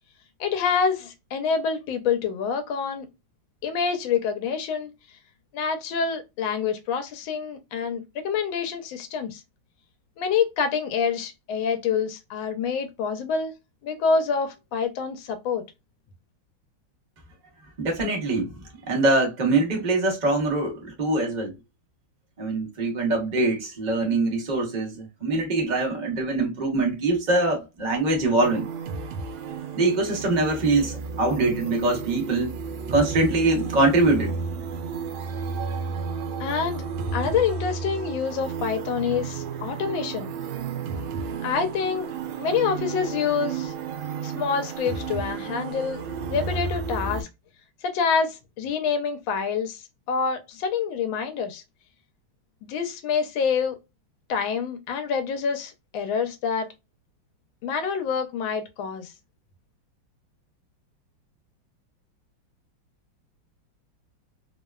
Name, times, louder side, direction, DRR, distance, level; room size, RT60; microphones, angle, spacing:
voice 1, 0.4-3.1 3.6-4.9 5.5-9.4 10.2-13.5 13.8-15.6 36.4-36.8 37.1-40.3 41.4-42.1 42.4-43.7 44.2-46.0 46.3-47.3 47.8-51.6 52.6-53.8 54.3-56.7 57.6-59.1, left 6 dB, 80° left, 1.3 m, -27 dB
voice 2, 17.8-18.5 18.9-21.5 22.4-28.7 29.8-32.5 32.9-34.3, right 2 dB, 60° right, 0.4 m, -23 dB
sound 1, 28.4-47.2, right 5 dB, 80° right, 1.4 m, -32 dB
3.5 x 2.1 x 2.2 m
omnidirectional pair, 2.2 m